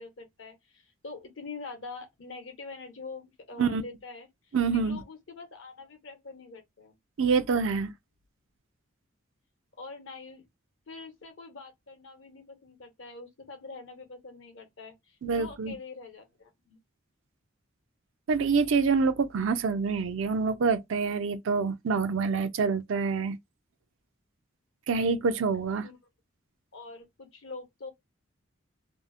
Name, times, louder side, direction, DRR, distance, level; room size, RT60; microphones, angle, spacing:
voice 1, 0.0-7.0 9.7-10.5 10.9-16.8 25.7-26.0 26.7-27.9, left 4 dB, 65° left, 0.9 m, -45 dB
voice 2, 4.5-5.0 7.2-7.9 15.2-15.7 18.3-23.4 24.9-25.9, right 5 dB, 65° right, 0.4 m, -26 dB
2.7 x 2.0 x 2.4 m
head